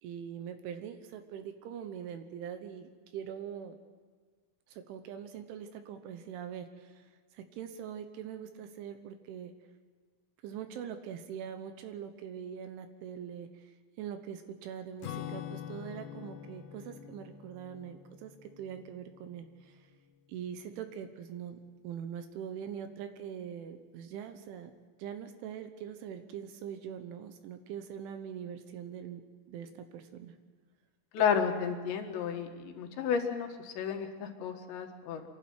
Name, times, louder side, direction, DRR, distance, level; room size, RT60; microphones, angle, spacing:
voice 1, 0.0-3.8 4.7-6.9 7.3-9.5 10.4-13.5 14.0-19.8 20.3-21.6 21.8-24.7 25.0-29.2 29.5-30.3, right 8 dB, 75° right, 7 dB, 3.4 m, -42 dB
Acoustic guitar / Strum, 15.0-19.8, left 10 dB, 85° left, 3.7 m, -45 dB
voice 2, 31.1-35.2, left 7 dB, 65° left, 4 dB, 3.7 m, -32 dB
28.5 x 12.0 x 9.5 m, 1.5 s
omnidirectional pair, 5.8 m